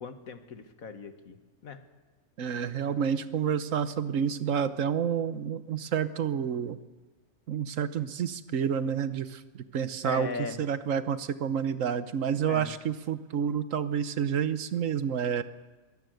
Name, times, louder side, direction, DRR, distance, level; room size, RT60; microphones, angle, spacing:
voice 1, 0.0-1.4 1.6-1.8 10.0-10.6 12.5-12.7, left 5 dB, 85° left, 9 dB, 1.9 m, -38 dB
voice 2, 2.4-6.8 7.5-10.3 10.6-15.4, right 8 dB, 70° right, 13 dB, 1.3 m, -29 dB
22.5 x 17.0 x 7.9 m, 1.2 s
omnidirectional pair, 1.4 m